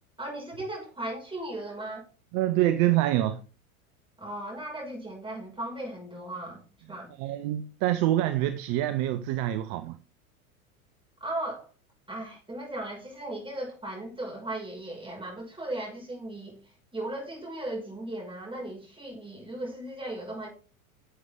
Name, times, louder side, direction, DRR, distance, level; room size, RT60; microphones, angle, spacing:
voice 1, 0.2-2.0 4.2-6.6 6.9-7.1 11.2-11.7 12.1-16.6 16.9-20.5, right 1 dB, 10° right, 5.8 m, -37 dB
voice 2, 2.3-3.4 7.2-10.0, right 14 dB, 45° right, 0.8 m, -26 dB
11.0 x 7.7 x 3.7 m
hypercardioid pair, 90°, 43 cm